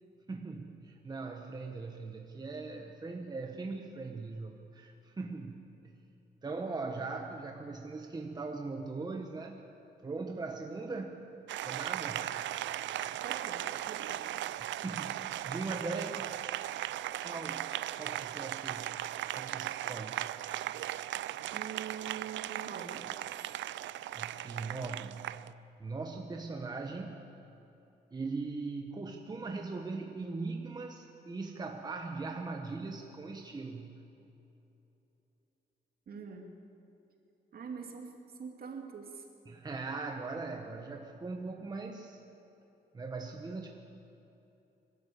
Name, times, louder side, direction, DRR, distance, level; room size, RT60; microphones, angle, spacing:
voice 1, 0.3-5.9 6.4-9.6 10.0-11.2 11.6-12.2 13.1-13.2 14.6-16.4 17.1-19.0 19.3-20.3 24.1-25.5 25.8-27.3 28.1-33.9 39.5-42.2 42.9-43.7, right 3 dB, 20° right, 2 dB, 1.2 m, -40 dB
Applause, 11.5-25.5, right 13 dB, 90° right, 0.5 m, -38 dB
voice 2, 13.2-14.4 21.5-23.2 36.1-36.5 37.5-39.3, right 6 dB, 55° right, 2 dB, 2.6 m, -44 dB
24.0 x 12.5 x 8.6 m, 3.0 s
cardioid pair, 140°, 19 cm